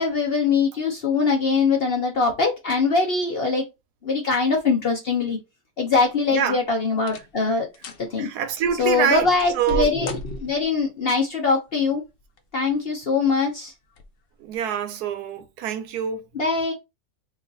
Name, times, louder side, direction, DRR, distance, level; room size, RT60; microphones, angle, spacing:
voice 1, 0.0-3.7 4.0-5.4 5.8-7.7 8.0-8.3 8.8-12.0 12.5-13.7 16.3-16.7, left 4 dB, 50° left, 0.8 m, -22 dB
sound 1, 6.1-6.5 7.0-7.4 7.7-8.1 8.6-10.8 12.0-12.6 13.1-13.2 13.9-14.1 14.5-14.6, left 1 dB, 90° left, 0.5 m, -35 dB
voice 2, 8.2-9.3 9.5-9.9 14.4-16.2, right 9 dB, 80° right, 1.2 m, -25 dB
3.1 x 2.5 x 3.8 m
omnidirectional pair, 1.7 m